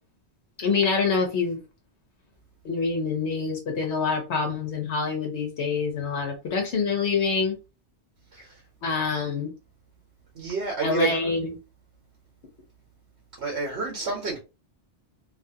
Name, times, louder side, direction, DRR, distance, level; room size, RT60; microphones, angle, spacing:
voice 1, 0.6-1.6 2.6-7.5 8.8-9.5 10.8-11.5, left 4 dB, 80° left, 1.1 m, -26 dB
voice 2, 10.3-11.2 13.4-14.4, right 4 dB, 80° right, 1.2 m, -29 dB
2.8 x 2.4 x 2.7 m
omnidirectional pair, 1.1 m